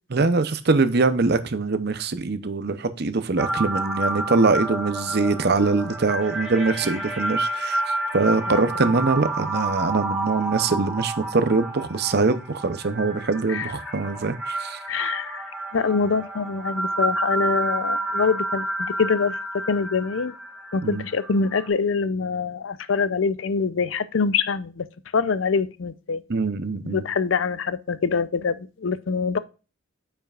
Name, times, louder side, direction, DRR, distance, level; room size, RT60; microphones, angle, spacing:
voice 1, 0.1-14.8 20.8-21.1 26.3-27.0, right 3 dB, 50° right, 0.7 m, -23 dB
sound 1, 3.4-21.7, right 2 dB, 5° right, 2.1 m, -30 dB
voice 2, 8.5-8.9 13.5-13.7 14.9-15.4 15.7-20.3 20.7-24.8 25.1-26.2 26.9-29.4, left 5 dB, 70° left, 0.5 m, -25 dB
8.9 x 5.7 x 2.4 m
head